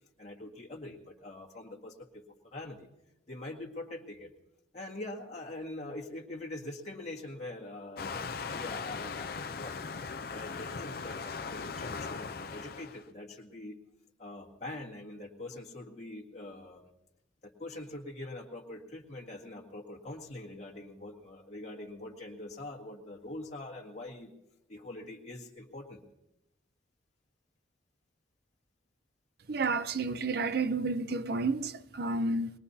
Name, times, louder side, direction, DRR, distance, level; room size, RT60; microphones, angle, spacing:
voice 1, 0.2-2.2 2.5-2.9 3.3-4.3 4.7-9.8 10.3-13.8 14.2-16.8 17.4-24.3 24.7-26.0, left 2 dB, 35° left, 1.7 m, -44 dB
Waves surf, 8.0-13.0, left 5 dB, 50° left, 0.6 m, -39 dB
voice 2, 29.5-32.5, right 3 dB, 55° right, 0.6 m, -31 dB
21.5 x 21.0 x 2.8 m
head